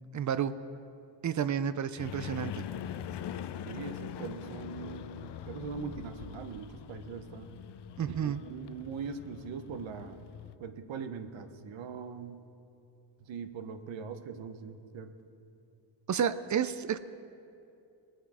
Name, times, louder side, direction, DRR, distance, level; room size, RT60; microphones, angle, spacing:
voice 1, 0.1-0.5 1.2-2.6 8.0-8.4 16.1-17.0, right 8 dB, 40° right, 13 dB, 0.5 m, -30 dB
sound 1, 2.0-10.5, left 10 dB, 65° left, 0.6 m, -43 dB
voice 2, 3.7-7.5 8.0-10.3 10.6-12.4 13.2-15.1, right 5 dB, 80° right, 8 dB, 1.0 m, -41 dB
21.5 x 7.9 x 4.9 m, 2.6 s
cardioid pair, 130°, 45 cm